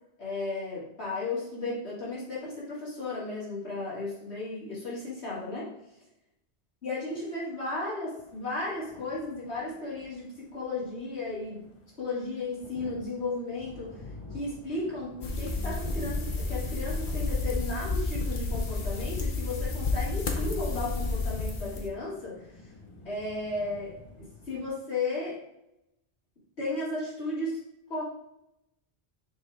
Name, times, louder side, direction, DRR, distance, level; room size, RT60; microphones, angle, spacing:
voice 1, 0.2-5.7 6.8-11.7 12.0-14.0 14.3-22.4 23.0-25.4 26.6-27.6 27.9-28.0, left 2 dB, 85° left, -6 dB, 2.8 m, -34 dB
sound 1, 8.2-24.7, left 2 dB, 30° left, 1.1 m, -49 dB
sound 2, 15.2-21.9, left 3 dB, 50° left, 1.0 m, -31 dB
6.5 x 5.0 x 3.6 m, 0.85 s
omnidirectional pair, 1.1 m